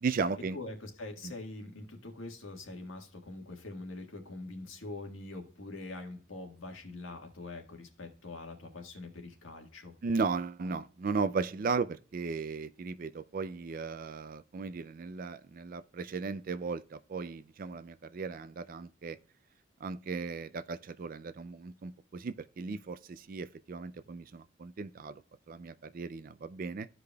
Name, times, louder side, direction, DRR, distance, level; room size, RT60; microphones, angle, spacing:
voice 1, 0.0-0.6 1.2-1.3 10.0-19.2 19.8-25.2 25.5-26.9, right 4 dB, 45° right, 0.3 m, -36 dB
voice 2, 0.5-9.9, left 2 dB, 80° left, 1.6 m, -44 dB
14.0 x 4.9 x 2.3 m
head